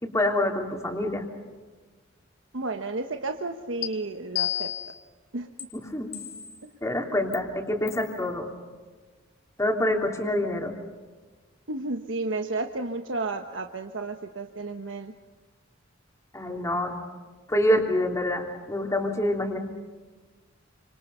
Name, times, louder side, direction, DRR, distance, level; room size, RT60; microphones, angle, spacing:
voice 1, 0.0-1.2 5.7-6.1 6.8-8.5 9.6-10.8 16.3-16.9 17.5-19.6, left 1 dB, 15° left, 2 dB, 3.3 m, -26 dB
voice 2, 2.5-4.7 5.3-5.5 6.6-6.7 11.7-15.1, right 3 dB, 75° right, 5 dB, 1.2 m, -32 dB
sound 1, 3.8-3.9 4.4-5.0 5.6-5.7 6.1-6.7 7.3-7.4 7.9-8.1, left 12 dB, 55° left, 2.8 m, -31 dB
29.5 x 27.0 x 5.7 m, 1.3 s
head